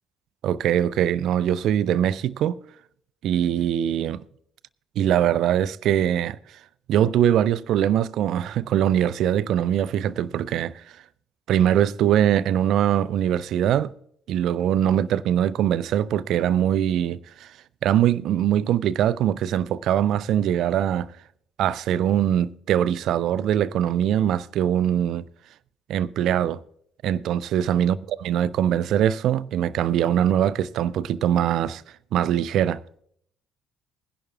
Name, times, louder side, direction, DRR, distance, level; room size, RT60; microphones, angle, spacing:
voice 1, 0.4-2.6 3.2-4.2 5.0-6.4 6.9-10.8 11.5-13.9 14.3-17.5 17.8-21.1 21.6-25.2 25.9-26.6 27.0-31.8 32.1-32.8, right 10 dB, 55° right, 0.4 m, -22 dB
21.0 x 11.0 x 2.4 m
figure-of-eight pair, 45°, 0 cm